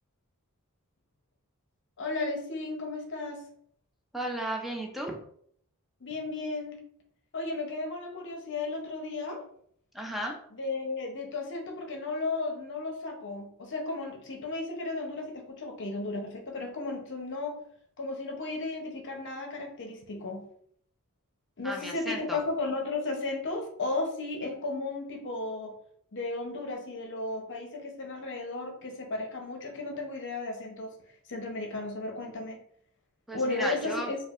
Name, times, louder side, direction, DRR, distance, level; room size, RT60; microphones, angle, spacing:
voice 1, 2.0-3.4 6.0-6.8 7.3-9.4 10.5-17.6 18.0-20.4 21.6-25.7 26.1-30.9 31.3-32.6 33.3-34.2, left 3 dB, 55° left, 3 dB, 0.7 m, -34 dB
voice 2, 4.1-5.2 9.9-10.4 21.6-22.4 33.3-34.1, right 1 dB, ahead, 0 dB, 0.5 m, -34 dB
4.5 x 2.4 x 2.4 m, 0.65 s
head